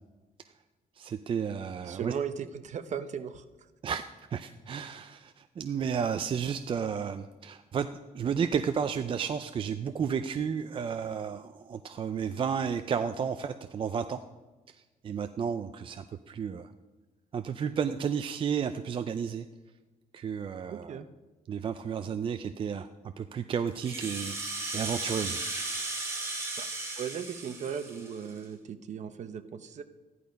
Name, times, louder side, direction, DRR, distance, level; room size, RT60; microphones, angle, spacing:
voice 1, 1.0-2.1 3.8-4.0 4.3-7.9 8.1-14.2 14.7-16.7 17.3-19.5 20.1-21.0 21.5-22.9 23.2-24.4 24.7-25.4, right 7 dB, 35° right, 9 dB, 0.4 m, -32 dB
voice 2, 1.8-3.4 20.7-21.1 26.6-26.7 27.0-29.8, right 7 dB, 50° right, 11 dB, 0.8 m, -37 dB
Rattle (instrument), 23.7-28.4, right 2 dB, 15° right, 2.8 m, -36 dB
14.5 x 11.0 x 5.2 m, 1.2 s
cardioid pair, 160°, 15 cm